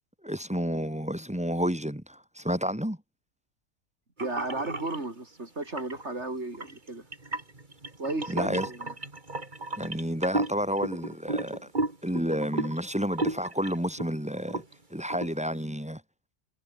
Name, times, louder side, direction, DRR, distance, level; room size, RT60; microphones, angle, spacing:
voice 1, 0.2-3.0 8.3-8.7 9.8-11.6 12.0-14.6 14.9-16.0, equal, 5° right, 2.1 m, -30 dB
sound 1, 4.2-5.0 5.6-6.1 6.5-14.1 14.4-14.7 15.1-15.3, right 2 dB, 40° right, 3.0 m, -33 dB
voice 2, 4.2-7.0 8.0-8.9, right 2 dB, 65° right, 4.5 m, -34 dB
omnidirectional pair, 1.2 m